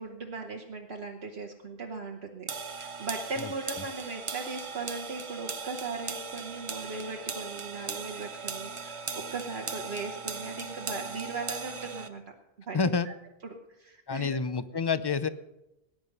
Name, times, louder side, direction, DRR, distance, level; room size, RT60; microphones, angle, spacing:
voice 1, 0.0-12.2 12.6-12.8 13.0-13.1 13.4-14.4, right 3 dB, 75° right, 1 dB, 1.5 m, -38 dB
sound 1, 2.5-12.1, right 5 dB, 35° right, 0.7 m, -38 dB
voice 2, 3.4-3.8 12.7-13.1 14.1-15.3, left 5 dB, 30° left, 14 dB, 0.5 m, -29 dB
19.0 x 9.7 x 5.4 m, 0.91 s
omnidirectional pair, 1.1 m